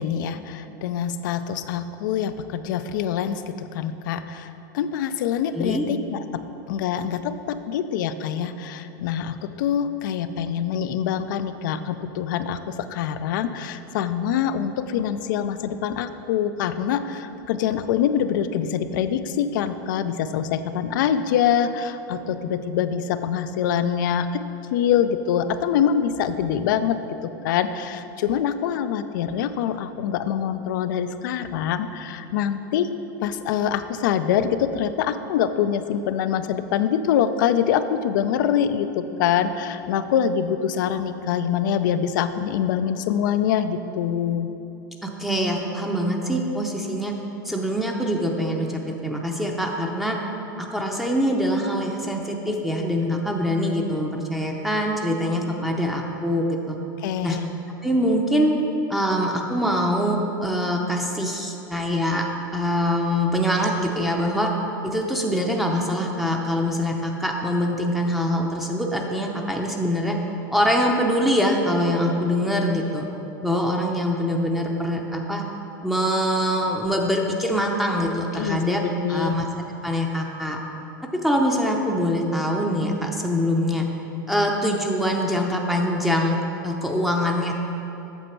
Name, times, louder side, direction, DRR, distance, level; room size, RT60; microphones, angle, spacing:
voice 1, 0.0-24.4 24.7-32.9 33.2-44.5 57.0-57.4 78.3-79.4, left 8 dB, 70° left, 11 dB, 0.5 m, -25 dB
voice 2, 5.5-5.8 45.0-47.2 47.4-50.2 50.6-56.8 57.2-57.4 57.8-58.5 58.9-64.5 64.8-70.2 70.5-73.1 73.4-75.4 75.8-78.8 79.1-79.5 79.8-80.6 81.2-83.9 84.3-87.5, equal, ahead, -1 dB, 0.7 m, -24 dB
8.1 x 6.6 x 4.5 m, 3.0 s
hypercardioid pair, 110°, 11 cm